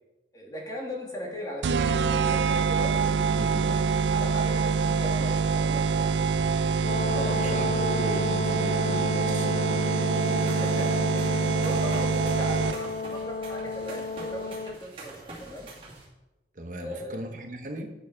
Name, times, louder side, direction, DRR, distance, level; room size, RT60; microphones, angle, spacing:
voice 1, 0.3-1.8 2.1-3.6 4.1-6.1 7.1-7.6 10.3-15.7 16.8-17.3, equal, 20° left, -2 dB, 2.0 m, -39 dB
sound 1, 1.6-13.0, right 5 dB, 85° right, 0.4 m, -25 dB
voice 2, 3.3-3.8 7.3-9.8 16.6-17.9, right 1 dB, 45° right, 4 dB, 0.9 m, -38 dB
Brass instrument, 6.8-14.8, left 4 dB, 50° left, 0.4 m, -32 dB
sound 2, 10.1-16.1, right 2 dB, 30° right, 2.6 m, -45 dB
9.2 x 6.5 x 5.8 m, 1.0 s
head